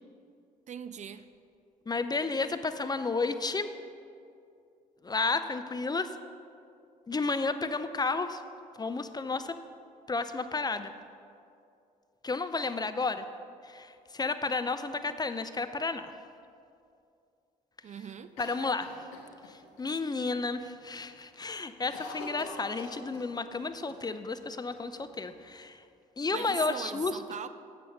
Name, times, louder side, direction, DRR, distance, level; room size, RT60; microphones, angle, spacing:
voice 1, 0.7-1.2 17.8-18.3 26.3-27.5, right 8 dB, 40° right, 12 dB, 0.4 m, -40 dB
voice 2, 1.9-3.7 5.0-6.1 7.1-8.4 8.8-9.6 10.1-10.9 12.2-13.2 13.6-16.1 18.4-18.9 19.5-25.8 26.2-27.2, left 3 dB, 20° left, 10 dB, 0.5 m, -32 dB
Cough, 18.4-19.9 20.2-20.3 20.6-21.1 21.3-23.6 23.9-24.0 24.7-25.5, left 3 dB, 80° left, 1.1 m, -45 dB
8.3 x 7.9 x 5.5 m, 2.5 s
hypercardioid pair, 50°, 19 cm